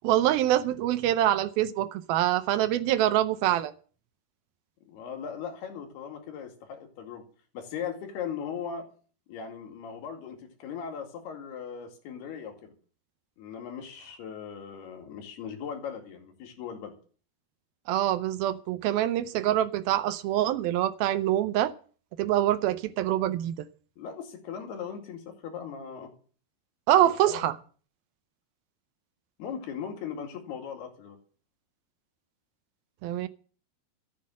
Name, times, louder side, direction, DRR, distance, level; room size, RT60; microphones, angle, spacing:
voice 1, 0.0-3.7 17.9-21.7 22.2-23.7 26.9-27.5 33.0-33.3, right 12 dB, 75° right, 2.4 m, -25 dB
voice 2, 4.9-7.2 7.5-8.9 9.3-12.7 13.4-17.0 24.0-26.1 27.3-27.5 29.4-31.2, left 7 dB, 75° left, 4.2 m, -38 dB
14.0 x 8.4 x 7.5 m
omnidirectional pair, 4.7 m